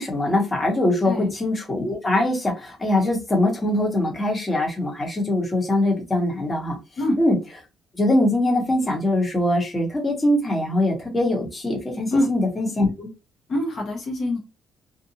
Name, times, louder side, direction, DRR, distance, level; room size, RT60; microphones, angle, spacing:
voice 1, 0.0-6.8 7.2-7.3 7.9-13.1, left 1 dB, 25° left, 0 dB, 1.2 m, -22 dB
voice 2, 13.5-14.4, left 1 dB, 55° left, -1 dB, 0.9 m, -24 dB
2.5 x 2.2 x 2.8 m, 0.26 s
cardioid pair, 90°, 0 cm